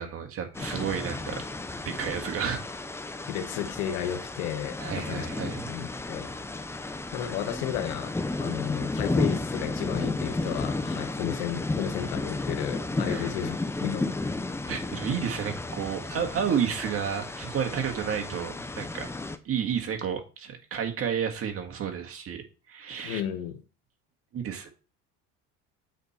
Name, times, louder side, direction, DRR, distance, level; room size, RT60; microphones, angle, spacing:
voice 1, 0.0-1.4 1.8-2.6 4.8-5.7 13.0-13.3 14.7-19.1 19.4-22.4 22.7-23.2 24.3-24.8, right 8 dB, 45° right, 1.8 m, -31 dB
sound 1, 0.5-19.4, left 2 dB, 10° left, 0.6 m, -33 dB
voice 2, 3.3-6.3 6.6-6.8 7.1-14.2 23.0-23.6, left 11 dB, 85° left, 1.3 m, -33 dB
8.1 x 4.5 x 4.2 m
supercardioid pair, 95°, 33 cm